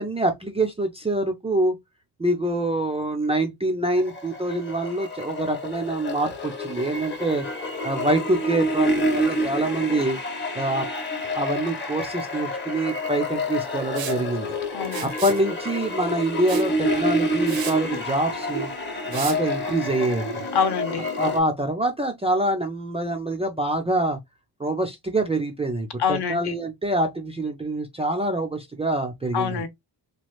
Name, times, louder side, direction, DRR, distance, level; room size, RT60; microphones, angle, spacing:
voice 1, 0.0-1.8 2.2-7.4 7.8-10.2 10.6-10.9 11.3-14.6 15.0-18.7 19.1-20.4 21.2-24.2 24.6-29.6, right 1 dB, 15° right, 0.3 m, -25 dB
sound 1, 3.9-21.4, left 1 dB, 25° left, 0.7 m, -28 dB
Liquid, 14.0-14.2 14.9-15.4 16.5-16.7 17.1-17.2 17.5-17.8 19.1-19.4, right 9 dB, 60° right, 0.6 m, -34 dB
voice 2, 14.7-15.1 20.5-21.1 26.0-26.5 29.3-29.7, left 6 dB, 65° left, 0.8 m, -25 dB
3.0 x 2.4 x 2.9 m
wide cardioid pair, 175°, 42 cm